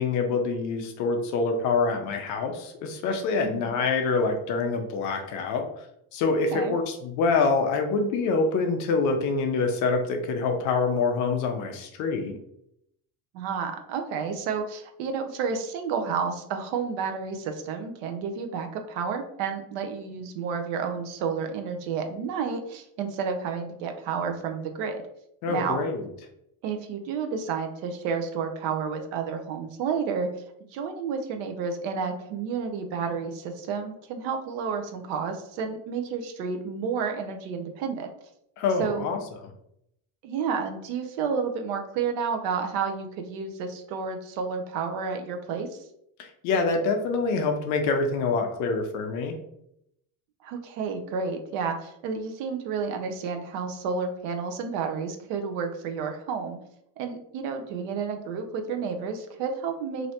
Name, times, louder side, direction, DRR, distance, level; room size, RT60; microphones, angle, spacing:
voice 1, 0.0-5.9 6.1-12.4 25.4-26.1 38.6-39.5 46.2-49.4, left 4 dB, 45° left, 4 dB, 0.4 m, -26 dB
voice 2, 13.3-25.0 25.5-25.8 26.6-30.3 30.7-38.1 38.8-39.0 40.2-45.8 50.4-56.6 57.0-60.1, right 5 dB, 65° right, 5 dB, 0.6 m, -31 dB
3.2 x 2.6 x 2.7 m, 0.77 s
cardioid pair, 165°, 42 cm